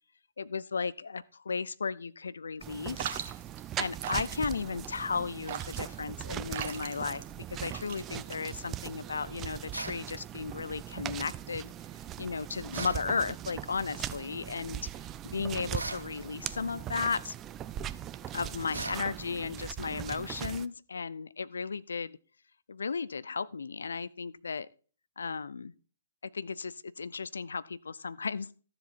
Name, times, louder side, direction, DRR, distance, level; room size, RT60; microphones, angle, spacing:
voice 1, 0.4-3.2 3.8-7.2 7.5-11.7 12.2-14.8 15.2-17.3 18.3-22.2 22.7-24.7 25.2-25.7 26.2-28.5, left 5 dB, 75° left, 0.5 m, -35 dB
sound 1, 2.6-20.7, right 11 dB, 25° right, 0.5 m, -40 dB
sound 2, 3.0-8.9, right 9 dB, 45° right, 1.4 m, -40 dB
sound 3, 9.7-10.0 12.7-13.0 15.7-16.1 18.7-19.0, right 3 dB, 85° right, 1.2 m, -38 dB
13.0 x 7.6 x 4.2 m
figure-of-eight pair, 125°, 0 cm